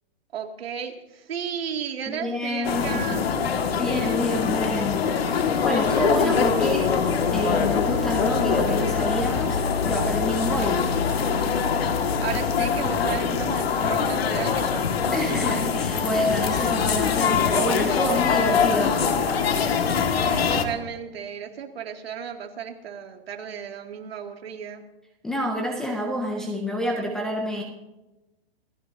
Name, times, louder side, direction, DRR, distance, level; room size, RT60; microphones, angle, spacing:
voice 1, 0.3-3.3 10.7-11.0 12.2-15.6 16.7-16.9 20.3-24.8, right 8 dB, 75° right, 3 dB, 2.6 m, -34 dB
voice 2, 2.1-3.3 3.7-5.1 5.6-6.9 7.3-10.8 15.1-19.0 25.2-27.6, equal, ahead, 1 dB, 0.5 m, -28 dB
sound 1, 2.6-20.7, left 6 dB, 75° left, 2.1 m, -23 dB
28.0 x 15.0 x 2.8 m, 1.1 s
hypercardioid pair, 170°, 31 cm